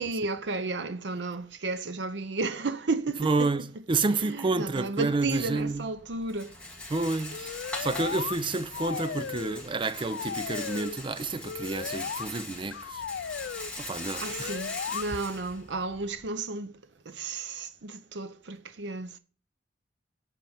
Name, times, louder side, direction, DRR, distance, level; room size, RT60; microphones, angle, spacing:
voice 1, 0.0-3.5 4.3-6.5 14.2-16.8 17.1-19.2, right 3 dB, 85° right, 0.7 m, -33 dB
voice 2, 3.2-5.9 6.9-13.0 13.8-14.5, right 3 dB, 30° right, 0.5 m, -29 dB
Rattle, 5.2-16.3, left 2 dB, 5° left, 2.1 m, -41 dB
sound 1, 7.3-8.4 8.7-9.7 9.9-11.0 11.4-12.3 12.7-13.7 14.3-15.0, left 7 dB, 75° left, 0.3 m, -36 dB
9.1 x 4.5 x 7.1 m
head